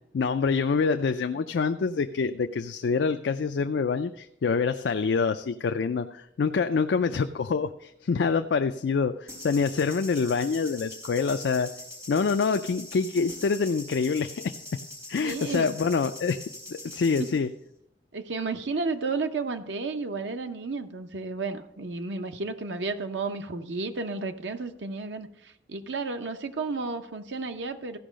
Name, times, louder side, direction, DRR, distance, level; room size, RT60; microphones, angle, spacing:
voice 1, 0.1-11.7 12.1-14.5 15.1-16.4 16.7-17.5, left 5 dB, 70° left, 8 dB, 0.4 m, -26 dB
sound 1, 9.3-17.4, left 1 dB, 15° right, 4.2 m, -43 dB
voice 2, 15.2-15.7 16.9-17.0 18.1-28.0, right 3 dB, 90° right, 7 dB, 0.7 m, -32 dB
14.5 x 5.4 x 5.0 m, 0.79 s
head